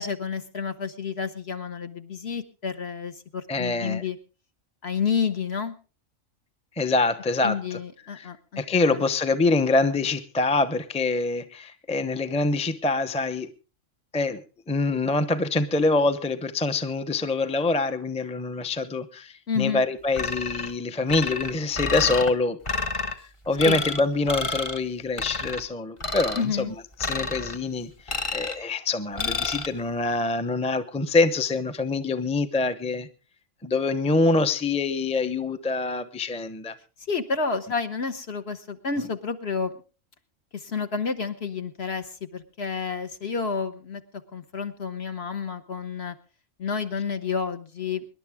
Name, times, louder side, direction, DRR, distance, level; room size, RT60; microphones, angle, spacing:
voice 1, 0.0-4.2 4.8-5.7 7.4-8.6 8.9-9.0 19.5-19.8 23.6-23.8 26.3-26.7 37.1-39.7 40.5-44.0 44.3-46.1 46.6-48.1, left 5 dB, 50° left, 8 dB, 1.4 m, -30 dB
voice 2, 3.5-4.0 6.8-7.8 8.1-13.5 14.1-22.6 23.5-26.6 27.0-33.1 33.6-36.7, left 3 dB, 5° left, 10 dB, 0.7 m, -25 dB
sound 1, 20.2-20.7 21.1-22.3 22.7-23.1 23.6-24.0 24.3-24.8 25.2-25.6 26.0-26.5 27.0-27.6 28.1-28.6 29.2-29.7, left 3 dB, 25° left, 1.0 m, -29 dB
25.5 x 11.0 x 3.6 m, 0.35 s
omnidirectional pair, 1.4 m